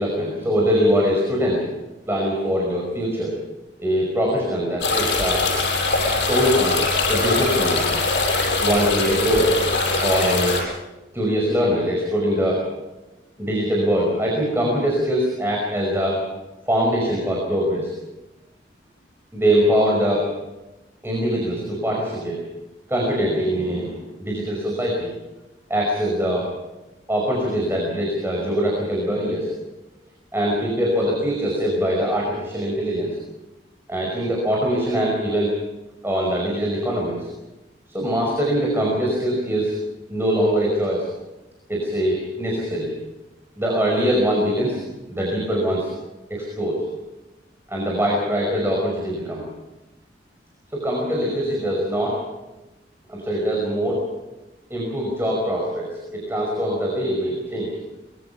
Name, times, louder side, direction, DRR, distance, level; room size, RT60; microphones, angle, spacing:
voice 1, 0.0-1.6 2.1-3.4 3.8-5.5 6.3-6.8 7.1-7.8 8.6-9.5 10.0-10.6 11.1-12.6 13.4-16.2 16.7-17.9 19.3-20.2 21.0-22.4 22.9-25.1 25.7-26.5 27.1-29.5 30.3-33.2 33.9-35.5 36.0-37.3 37.9-39.8 40.1-41.1 41.7-42.9 43.6-44.8 45.1-45.9 46.3-46.8 47.7-49.4 50.7-52.2 53.1-54.0 54.7-57.8, equal, 15° right, -2 dB, 5.4 m, -22 dB
sound 1, 4.8-10.6, left 3 dB, 85° left, 7.2 m, -22 dB
24.5 x 22.0 x 5.9 m, 1.0 s
head